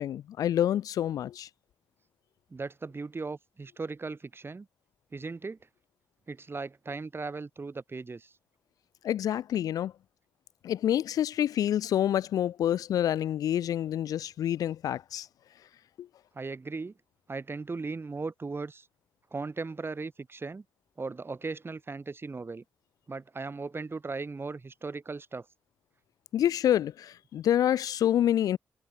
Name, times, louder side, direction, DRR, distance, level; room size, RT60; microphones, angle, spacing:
voice 1, 0.0-1.5 9.0-9.9 10.6-15.3 16.0-16.1 26.3-28.6, left 11 dB, 70° left, 0.4 m, -27 dB
voice 2, 2.5-4.7 5.1-5.6 6.3-8.3 16.3-16.9 17.3-18.9 19.3-20.6 21.0-22.6 23.1-25.5, right 4 dB, 40° right, 3.9 m, -37 dB
supercardioid pair, 45°, 6 cm